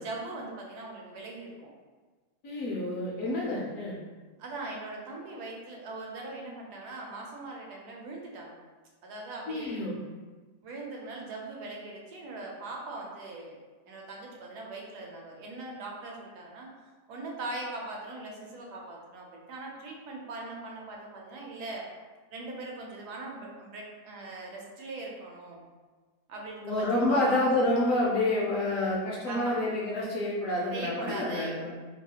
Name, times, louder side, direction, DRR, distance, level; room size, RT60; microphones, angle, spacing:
voice 1, 0.0-1.7 4.4-8.6 9.0-9.8 10.6-13.6 13.9-16.7 17.1-21.8 22.3-25.6 26.3-27.3 29.3-29.6 30.7-31.6, right 2 dB, 80° right, -1 dB, 1.1 m, -40 dB
voice 2, 2.4-4.0 9.5-10.0 26.6-31.7, left 1 dB, 70° left, -5 dB, 0.8 m, -28 dB
2.9 x 2.3 x 2.7 m, 1.4 s
omnidirectional pair, 1.8 m